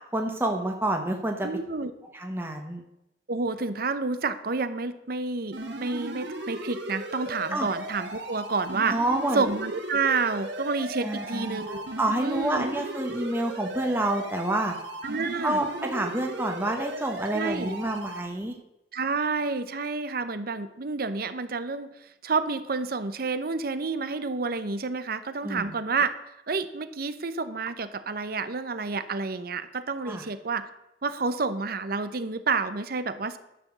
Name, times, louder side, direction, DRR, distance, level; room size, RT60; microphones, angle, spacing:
voice 1, 0.1-1.5 2.1-2.8 7.5-7.7 8.9-9.5 11.0-14.7 15.4-18.5 25.4-25.7 30.0-30.3, right 1 dB, 15° right, 2 dB, 1.0 m, -28 dB
voice 2, 1.4-1.9 3.3-9.0 9.3-11.9 12.2-12.7 15.0-15.6 17.3-17.7 18.9-26.1 26.5-30.7 31.0-33.4, right 4 dB, 55° right, 11 dB, 0.8 m, -29 dB
sound 1, 5.5-18.2, right 1 dB, 80° right, 2.1 m, -37 dB
11.0 x 6.9 x 7.3 m, 0.89 s
head